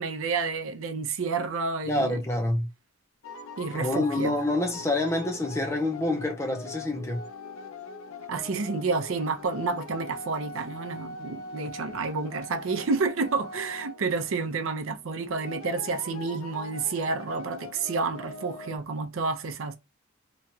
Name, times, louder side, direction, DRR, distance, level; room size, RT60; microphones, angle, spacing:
voice 1, 0.0-2.2 3.6-4.4 8.3-19.8, right 4 dB, 70° right, 0.5 m, -30 dB
voice 2, 1.9-2.7 3.7-7.2, left 2 dB, 15° left, 0.5 m, -27 dB
sound 1, 3.2-18.8, left 3 dB, 75° left, 0.5 m, -42 dB
3.0 x 2.3 x 2.7 m
head